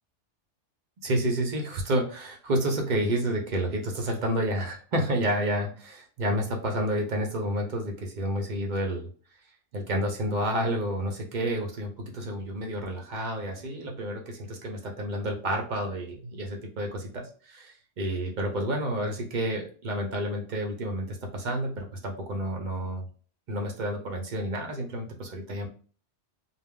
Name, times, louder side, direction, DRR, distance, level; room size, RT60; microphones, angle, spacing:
voice 1, 1.0-9.1 9.7-23.1 23.5-25.7, right 1 dB, 55° right, 1 dB, 0.6 m, -30 dB
2.3 x 2.0 x 3.5 m, 0.41 s
omnidirectional pair, 1.2 m